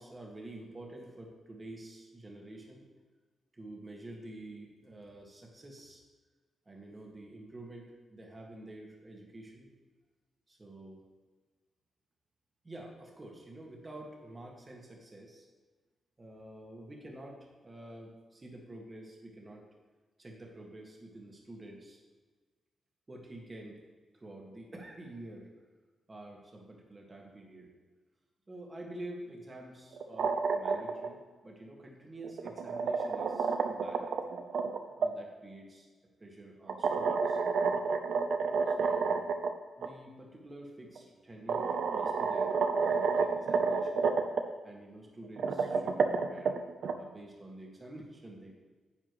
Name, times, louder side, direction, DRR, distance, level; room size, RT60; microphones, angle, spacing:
voice 1, 0.0-2.8 3.5-6.0 6.7-9.7 10.5-11.0 12.6-15.5 16.2-19.6 20.2-22.0 23.1-23.8 24.2-25.5 26.1-27.7 28.5-34.2 35.0-35.9 36.2-37.8 38.7-39.3 39.8-44.1 44.6-46.6 47.0-48.7, right 1 dB, 20° right, 0 dB, 1.8 m, -48 dB
sound 1, 29.9-31.1 32.2-35.1 36.7-39.5 39.8-39.9 41.0-41.1 41.5-44.4 45.2-46.9, right 5 dB, 70° right, 0.7 m, -30 dB
10.0 x 8.6 x 3.2 m, 1.4 s
wide cardioid pair, 140°, 0 cm